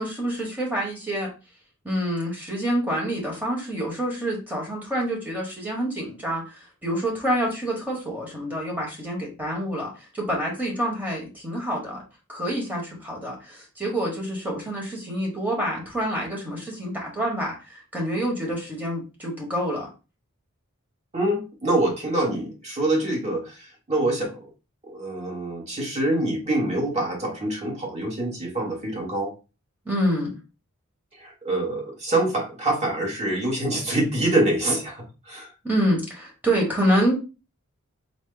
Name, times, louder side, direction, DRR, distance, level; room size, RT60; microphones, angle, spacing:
voice 1, 0.0-1.3 1.8-12.0 12.3-19.9 29.8-30.4 35.6-37.1, equal, 10° right, -2 dB, 1.1 m, -27 dB
voice 2, 21.1-24.5 24.9-29.3 31.2-35.5, right 1 dB, 30° right, -2 dB, 1.3 m, -25 dB
3.9 x 2.1 x 3.8 m, 0.31 s
head